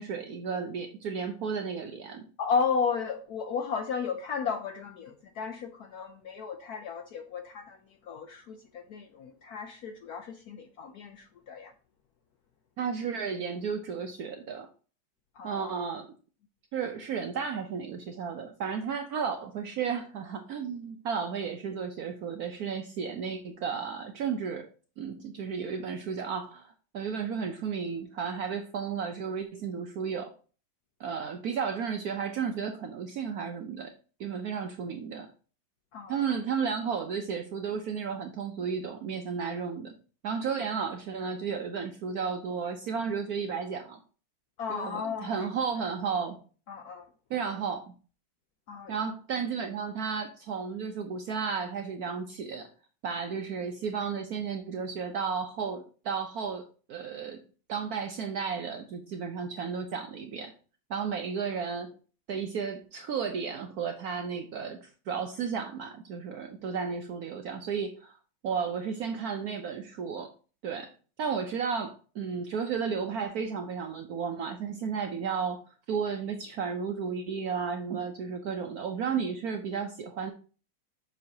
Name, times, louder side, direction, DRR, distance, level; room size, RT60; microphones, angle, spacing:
voice 1, 0.0-2.3 12.8-14.7 15.4-16.1 16.7-24.7 25.0-30.3 31.0-33.9 34.2-35.3 36.1-40.0 40.2-44.0 44.7-46.4 47.3-47.9 48.9-52.7 53.0-57.4 57.7-60.5 60.9-61.9 62.3-68.2 68.4-70.3 70.6-70.9 71.2-75.6 75.9-80.3, right 6 dB, 70° right, 0.9 m, -33 dB
voice 2, 2.4-11.7 15.3-15.8 35.9-36.4 44.6-45.5 46.7-47.1 48.7-48.9, left 5 dB, 70° left, 0.9 m, -34 dB
7.1 x 5.6 x 2.8 m
omnidirectional pair, 2.2 m